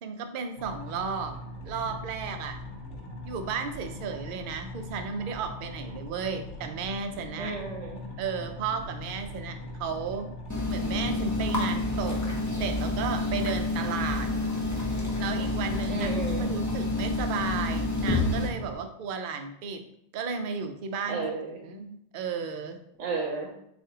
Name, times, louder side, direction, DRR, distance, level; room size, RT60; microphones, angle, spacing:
voice 1, 0.0-2.6 3.2-7.5 8.2-10.4 10.7-12.2 12.6-14.3 15.2-16.1 16.4-19.9 20.1-21.2 21.6-22.8, right 5 dB, 55° right, 6 dB, 0.6 m, -34 dB
sound 1, 0.6-18.8, left 1 dB, 70° left, 1.0 m, -41 dB
voice 2, 7.4-8.1 15.9-16.5 21.1-21.6 23.0-23.5, right 4 dB, 85° right, 1 dB, 1.1 m, -33 dB
sound 2, 10.5-18.5, left 2 dB, 20° left, 0.5 m, -29 dB
7.4 x 2.5 x 2.8 m, 0.74 s
omnidirectional pair, 1.3 m